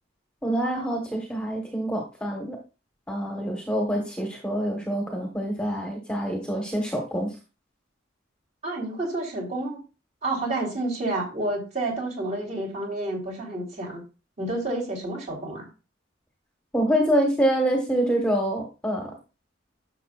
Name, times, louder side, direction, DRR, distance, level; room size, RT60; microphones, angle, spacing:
voice 1, 0.4-2.6 3.1-7.3 16.7-19.1, right 1 dB, 5° left, 1 dB, 1.4 m, -26 dB
voice 2, 8.6-9.8 10.2-14.0 14.4-15.6, right 2 dB, 35° right, -1 dB, 3.3 m, -29 dB
11.5 x 6.7 x 2.5 m, 0.31 s
head